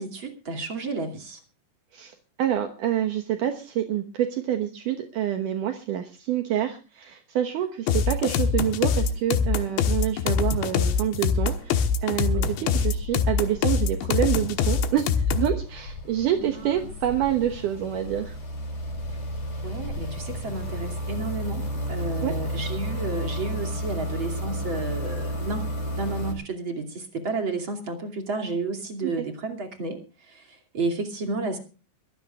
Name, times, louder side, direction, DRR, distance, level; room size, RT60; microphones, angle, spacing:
voice 1, 0.0-1.4 12.3-12.7 16.4-16.7 19.6-25.7 26.0-31.6, right 3 dB, 35° right, 3 dB, 2.5 m, -32 dB
voice 2, 1.9-18.4 22.2-22.3 29.0-29.2, right 11 dB, 70° right, 5 dB, 2.0 m, -27 dB
sound 1, 7.9-15.6, left 6 dB, 75° left, 3.5 m, -23 dB
sound 2, 9.4-9.9 10.1-26.3, equal, 35° left, 6.1 m, -33 dB
23.5 x 16.0 x 2.4 m, 0.34 s
omnidirectional pair, 5.3 m